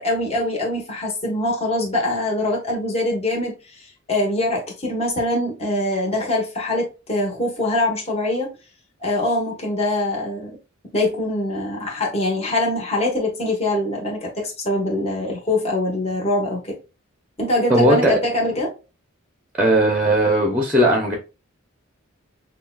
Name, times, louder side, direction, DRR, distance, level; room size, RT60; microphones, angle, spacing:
voice 1, 0.0-8.5 9.0-10.6 10.9-16.8 17.4-18.7, left 1 dB, 30° left, 1.3 m, -23 dB
voice 2, 17.7-18.2 19.6-21.1, right 1 dB, 5° right, 0.8 m, -17 dB
6.6 x 2.3 x 2.3 m
head